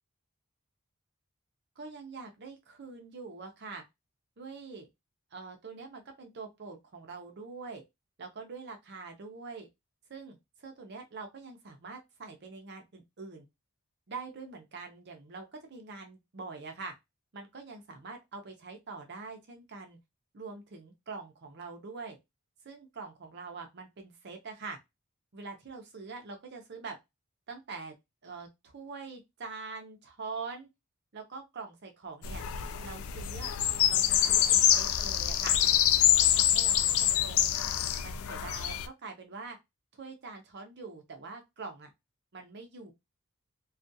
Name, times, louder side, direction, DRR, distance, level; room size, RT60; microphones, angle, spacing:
voice 1, 1.8-3.8 4.4-4.9 5.3-7.8 8.2-9.7 10.1-13.4 14.1-16.9 17.3-20.0 20.3-22.2 22.6-24.8 25.3-27.0 27.5-27.9 28.2-30.7 31.1-32.4 32.8-33.6 33.9-35.6 36.0-37.5 38.0-39.6 39.9-41.9 42.3-42.9, right 4 dB, 50° right, 4 dB, 0.6 m, -44 dB
sound 1, 32.2-38.9, left 11 dB, 75° left, 0.3 m, -26 dB
2.4 x 2.2 x 2.6 m, 0.20 s
head